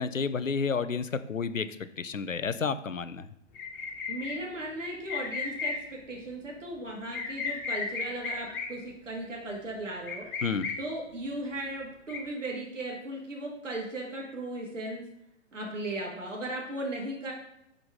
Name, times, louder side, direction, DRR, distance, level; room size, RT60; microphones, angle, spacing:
voice 1, 0.0-1.7 2.0-3.3 10.4-10.7, left 5 dB, 90° left, 13 dB, 0.6 m, -30 dB
sound 1, 3.5-4.3 5.1-5.8 7.1-8.7 10.1-10.7 12.1-12.3, left 5 dB, 45° left, 1.5 m, -34 dB
voice 2, 4.1-10.3 10.8-15.0 15.5-17.3, right 1 dB, 75° right, -1 dB, 1.7 m, -37 dB
5.7 x 5.1 x 4.8 m, 0.83 s
figure-of-eight pair, 120°, 38 cm